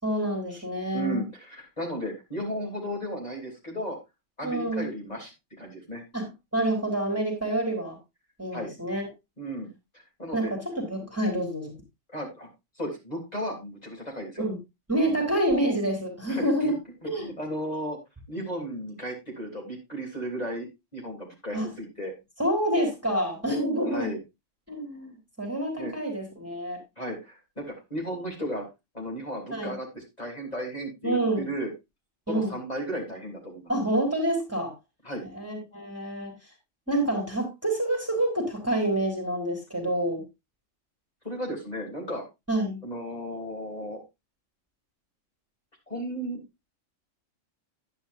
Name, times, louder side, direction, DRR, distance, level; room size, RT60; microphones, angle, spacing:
voice 1, 0.0-1.2 4.4-4.9 6.1-8.0 8.4-9.1 10.3-11.7 14.4-14.6 14.9-16.8 17.1-17.3 21.5-21.7 22.4-24.1 24.7-26.8 29.5-29.7 31.0-31.5 32.3-32.5 33.7-34.7 35.2-36.3 36.9-40.2 42.5-42.8, right 1 dB, 10° right, 1 dB, 3.3 m, -27 dB
voice 2, 0.9-4.0 4.4-5.3 5.6-6.0 8.5-8.7 9.4-9.7 10.2-10.5 12.1-12.5 12.8-14.4 16.3-16.7 17.0-18.0 18.3-22.1 23.9-24.2 25.8-25.9 27.0-28.7 28.9-31.7 32.3-33.7 35.0-35.3 41.2-42.2 42.8-44.0 45.9-46.4, equal, 30° left, -1 dB, 3.7 m, -34 dB
11.0 x 10.0 x 2.7 m, 0.23 s
omnidirectional pair, 1.3 m